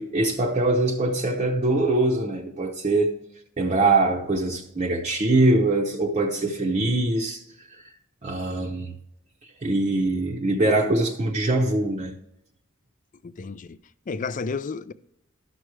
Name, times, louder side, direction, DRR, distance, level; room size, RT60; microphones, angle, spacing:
voice 1, 0.0-3.1 3.6-7.9 8.2-8.9 9.6-12.2, right 2 dB, 30° right, 0.7 m, -23 dB
voice 2, 13.2-13.8 14.1-14.9, left 4 dB, 40° left, 0.4 m, -31 dB
12.5 x 6.1 x 3.2 m
head